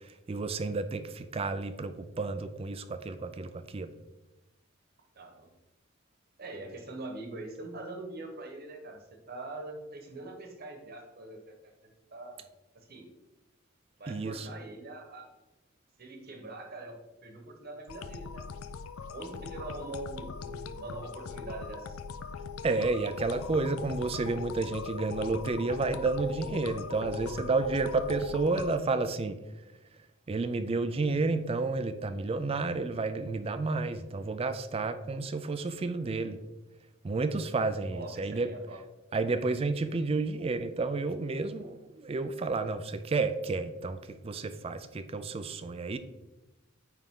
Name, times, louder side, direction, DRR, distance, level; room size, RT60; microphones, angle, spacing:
voice 1, 0.3-3.9 14.1-14.5 22.6-29.4 30.3-36.4 37.0-38.5 39.1-46.0, right 3 dB, 25° right, 11 dB, 0.4 m, -31 dB
voice 2, 5.1-5.5 6.4-12.5 12.7-13.1 14.0-15.3 16.0-16.9 17.2-18.4 19.1-22.0 36.0-36.2 37.9-38.8, right 2 dB, 45° right, 3 dB, 1.2 m, -43 dB
sound 1, 17.9-28.8, left 5 dB, 80° left, 0.4 m, -40 dB
9.0 x 3.5 x 3.7 m, 1.0 s
head